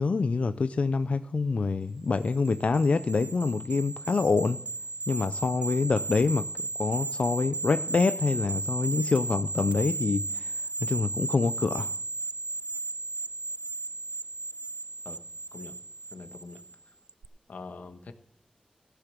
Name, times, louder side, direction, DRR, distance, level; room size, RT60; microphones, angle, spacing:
voice 1, 0.0-4.6 5.1-6.5 6.8-10.5 10.8-11.9, left 4 dB, 55° left, 12 dB, 0.4 m, -26 dB
sound 1, 2.1-16.7 17.1-17.2, right 3 dB, 55° right, 0.4 m, -35 dB
voice 2, 16.1-16.6 17.5-18.1, left 3 dB, 80° left, 8 dB, 1.2 m, -43 dB
15.5 x 6.8 x 7.4 m, 0.71 s
wide cardioid pair, 95°, 3 cm